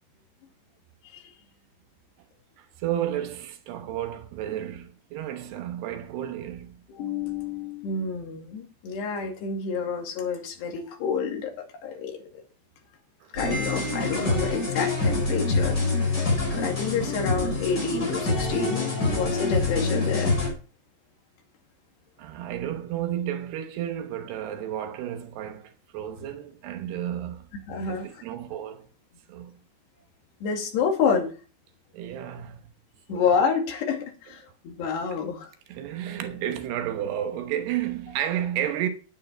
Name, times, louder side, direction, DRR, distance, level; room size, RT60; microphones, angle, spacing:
voice 1, 2.6-6.7 13.2-13.3 22.2-27.5 27.8-28.9 29.3-29.6 31.9-32.7 33.1-33.2 35.7-38.9, right 11 dB, 75° right, 3.0 m, -32 dB
voice 2, 6.9-12.4 13.3-15.8 16.5-20.4 27.7-28.1 30.4-31.3 33.1-35.5, left 5 dB, 75° left, 4.4 m, -28 dB
sound 1, 13.3-20.5, left 3 dB, 25° left, 5.0 m, -26 dB
10.5 x 9.6 x 4.5 m
omnidirectional pair, 4.9 m